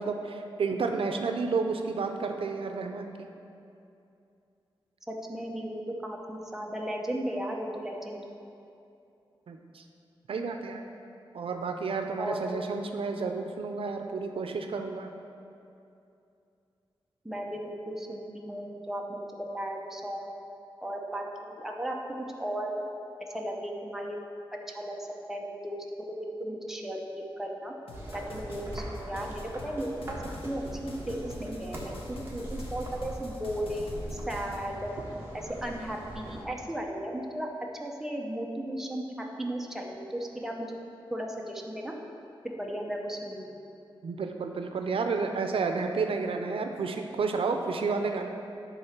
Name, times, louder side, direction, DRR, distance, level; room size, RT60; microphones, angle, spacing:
voice 1, 0.0-3.3 9.5-9.8 10.3-10.8 11.3-15.1 44.0-48.3, right 4 dB, 80° right, 5 dB, 0.5 m, -31 dB
voice 2, 5.1-8.2 12.2-12.6 17.2-20.3 20.8-21.9 22.4-22.7 23.2-24.2 24.7-24.9 25.3-25.8 26.2-27.7 28.1-34.9 35.3-37.5 37.8-39.0 39.4-40.8 41.1-41.9 42.4-43.6, right 1 dB, 5° right, 0 dB, 0.8 m, -35 dB
sound 1, 27.9-34.7, left 2 dB, 85° left, 1.0 m, -46 dB
sound 2, 27.9-36.4, right 1 dB, 25° right, 1.4 m, -41 dB
11.0 x 3.9 x 5.9 m, 2.7 s
wide cardioid pair, 150°, 9 cm